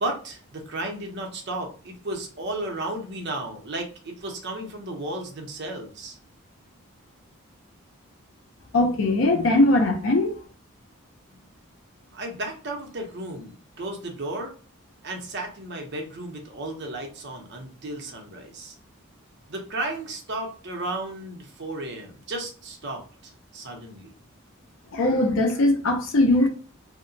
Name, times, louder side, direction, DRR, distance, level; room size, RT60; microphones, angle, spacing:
voice 1, 0.0-6.2 12.1-14.5 15.0-18.7 19.5-24.1, right 2 dB, 50° right, 0.6 m, -34 dB
voice 2, 8.7-10.4 24.9-26.5, left 2 dB, 65° left, 0.5 m, -20 dB
2.8 x 2.1 x 2.6 m
head